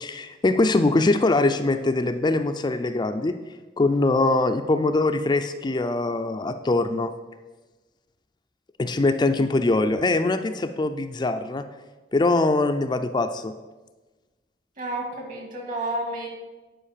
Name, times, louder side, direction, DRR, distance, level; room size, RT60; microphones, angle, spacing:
voice 1, 0.0-3.3 3.8-7.1 8.8-11.6 12.1-13.5, left 2 dB, 25° left, 7 dB, 0.4 m, -22 dB
voice 2, 14.8-16.3, right 1 dB, 50° right, 2 dB, 2.2 m, -30 dB
10.0 x 5.1 x 6.6 m, 1.2 s
head